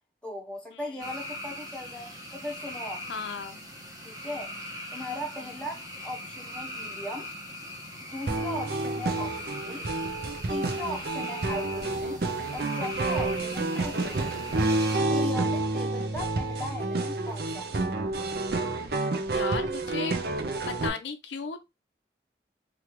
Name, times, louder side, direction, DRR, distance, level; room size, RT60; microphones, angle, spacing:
voice 1, 0.2-3.0 4.0-4.5 4.9-7.3 8.0-9.8 10.5-12.2 12.5-14.3 15.1-17.8, left 1 dB, 5° left, 0.7 m, -38 dB
sound 1, 1.0-15.0, left 1 dB, 20° right, 0.8 m, -40 dB
voice 2, 3.1-3.6 8.2-8.5 19.3-20.2 20.7-21.6, left 5 dB, 90° left, 0.6 m, -35 dB
sound 2, 8.3-20.9, right 2 dB, 60° right, 0.5 m, -29 dB
3.2 x 2.3 x 2.9 m
head